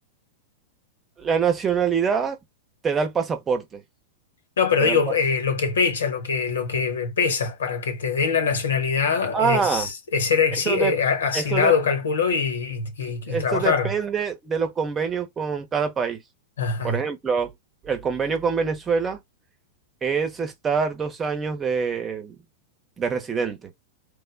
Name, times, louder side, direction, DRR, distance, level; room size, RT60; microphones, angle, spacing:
voice 1, 1.2-2.4 2.8-3.8 4.8-5.0 9.3-9.9 10.7-10.9 11.3-11.7 13.3-16.2 16.8-17.5 17.8-19.2 20.0-22.4 23.0-23.7, right 6 dB, 20° right, 0.9 m, -25 dB
voice 2, 4.6-13.9 16.6-17.0, left 5 dB, 75° left, 1.2 m, -23 dB
3.4 x 2.2 x 3.3 m
hypercardioid pair, 105°, 0 cm